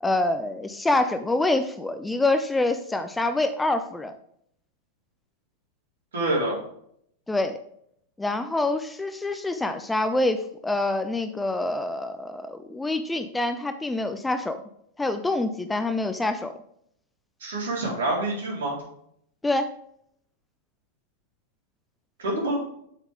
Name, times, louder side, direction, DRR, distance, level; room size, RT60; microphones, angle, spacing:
voice 1, 0.0-4.1 7.3-7.6 8.2-14.6 15.0-16.5 19.4-19.7, left 2 dB, 10° left, 9 dB, 0.5 m, -26 dB
voice 2, 6.1-6.6 17.4-18.8 22.2-22.6, right 2 dB, 65° right, -3 dB, 3.8 m, -26 dB
7.8 x 7.2 x 3.5 m, 0.69 s
figure-of-eight pair, 95°, 0 cm